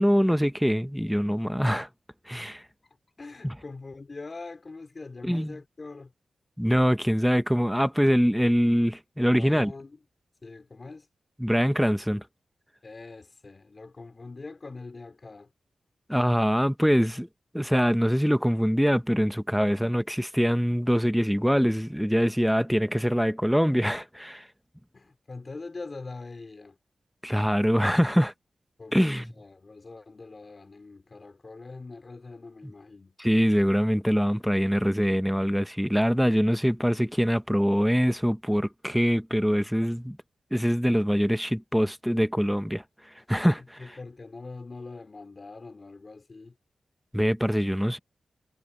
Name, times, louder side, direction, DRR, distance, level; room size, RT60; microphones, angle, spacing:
voice 1, 0.0-1.9 2.3-2.6 3.4-3.5 5.2-5.5 6.6-9.7 11.4-12.2 16.1-17.3 17.5-24.5 27.2-28.3 28.9-29.3 33.2-40.2 40.5-42.8 43.3-43.8 47.1-48.0, equal, ahead, 1.1 m, -24 dB
voice 2, 2.8-6.1 9.3-10.0 10.4-11.1 12.8-15.5 24.9-26.8 28.8-33.2 43.6-46.6, left 3 dB, 40° left, 3.2 m, -43 dB
wide cardioid pair, 90°, 0 cm